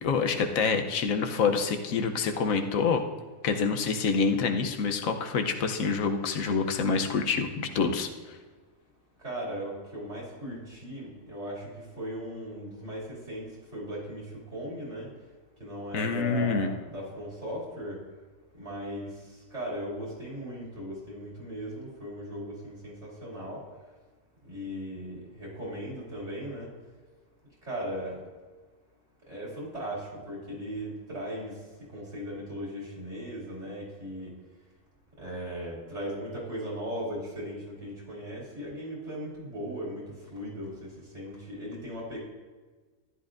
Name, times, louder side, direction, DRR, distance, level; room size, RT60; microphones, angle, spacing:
voice 1, 0.0-3.0 3.4-8.4 15.9-16.7, left 5 dB, 80° left, 5 dB, 1.2 m, -27 dB
voice 2, 9.2-11.7 12.0-13.5 13.7-15.1 15.6-18.0 18.6-19.1 19.5-23.6 24.5-26.7 27.7-28.2 29.3-31.5 31.9-34.3 35.2-40.0 40.3-42.2, equal, 55° right, -5 dB, 3.3 m, -37 dB
14.0 x 10.5 x 2.5 m, 1.4 s
omnidirectional pair, 1.4 m